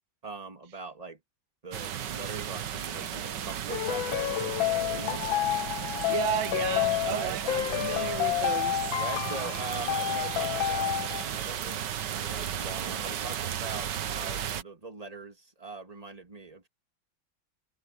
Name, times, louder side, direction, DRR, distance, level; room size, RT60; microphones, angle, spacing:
voice 1, 0.2-1.2 1.6-5.4 5.9-6.1 7.1-7.4 9.0-16.7, right 3 dB, 20° right, 2.5 m, -41 dB
sound 1, 1.7-14.6, right 9 dB, 65° right, 1.6 m, -34 dB
sound 2, 3.7-11.2, left 13 dB, 85° left, 1.4 m, -30 dB
voice 2, 6.1-8.9 9.2-9.5, right 11 dB, 85° right, 1.6 m, -34 dB
omnidirectional pair, 2.1 m